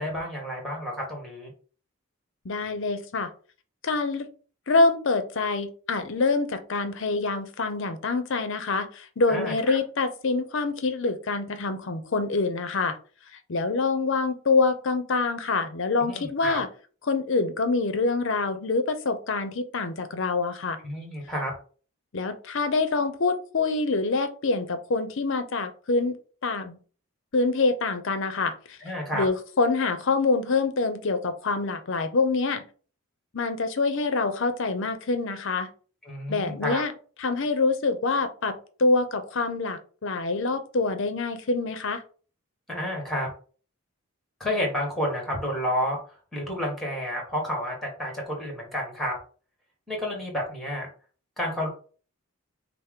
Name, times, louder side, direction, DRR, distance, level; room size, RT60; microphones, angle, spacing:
voice 1, 0.0-1.5 9.3-9.8 16.0-16.6 20.8-21.5 28.8-29.3 36.0-36.8 42.7-43.3 44.4-46.0 46.3-49.1 49.9-50.9 51.4-51.7, equal, ahead, 0 dB, 1.4 m, -30 dB
voice 2, 2.4-3.3 3.8-4.3 4.7-13.0 13.5-16.7 17.1-20.8 22.1-26.2 26.4-26.8 27.3-28.8 29.1-32.6 33.3-35.7 36.3-36.9 37.2-42.0, left 3 dB, 55° left, 9 dB, 0.6 m, -26 dB
5.5 x 2.0 x 3.6 m, 0.40 s
head